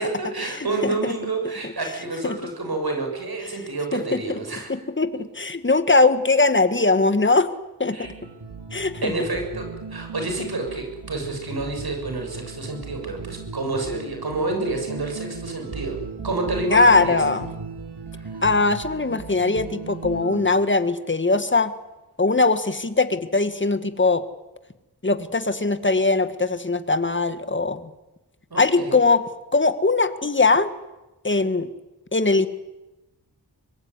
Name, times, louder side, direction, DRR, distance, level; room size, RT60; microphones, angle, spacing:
voice 1, 0.0-4.7 7.9-8.1 9.0-16.0 16.2-17.2 18.1-18.2 28.5-29.0, right 2 dB, 70° right, 4 dB, 7.4 m, -29 dB
voice 2, 0.5-1.1 2.2-2.4 3.9-4.4 4.7-7.5 7.8-8.0 8.7-9.1 16.7-17.5 18.4-21.7 22.2-24.2 25.0-27.9 28.6-29.2 29.5-30.7 31.2-31.7 32.1-32.5, left 3 dB, 30° left, 11 dB, 1.9 m, -20 dB
sound 1, 8.0-20.5, right 5 dB, 90° right, 2.4 m, -37 dB
24.5 x 22.0 x 9.9 m, 1.0 s
wide cardioid pair, 75°, 39 cm